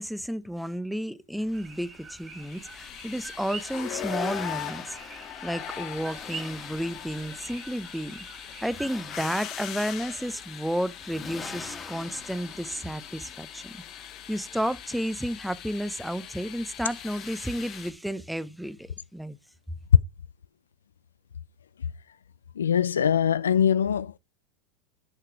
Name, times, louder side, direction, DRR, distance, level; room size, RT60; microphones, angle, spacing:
voice 1, 0.0-8.3 8.6-19.4, equal, ahead, 0.6 m, -32 dB
Accelerating revving vroom, 1.4-15.4, left 4 dB, 20° left, 1.6 m, -46 dB
sound 1, 1.5-9.0, right 4 dB, 25° right, 3.0 m, -45 dB
sound 2, 2.4-17.9, left 11 dB, 45° left, 1.3 m, -40 dB
voice 2, 22.6-24.2, left 8 dB, 85° left, 0.4 m, -23 dB
6.5 x 5.9 x 4.7 m
hypercardioid pair, 90°, 0 cm